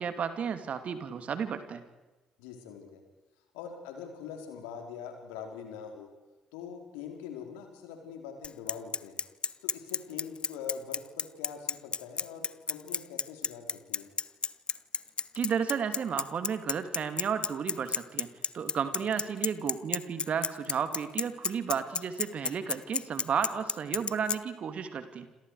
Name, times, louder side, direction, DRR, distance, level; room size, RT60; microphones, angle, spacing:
voice 1, 0.0-1.8 15.3-18.3 18.5-25.3, right 7 dB, 50° right, 10 dB, 2.6 m, -33 dB
voice 2, 2.4-3.0 3.5-6.1 6.5-9.2 9.6-14.1 19.0-19.1, left 7 dB, 75° left, 4 dB, 4.2 m, -43 dB
Bicycle, 8.4-24.4, left 5 dB, 35° left, 0.7 m, -31 dB
28.5 x 27.5 x 4.9 m, 1.1 s
figure-of-eight pair, 50°, 3 cm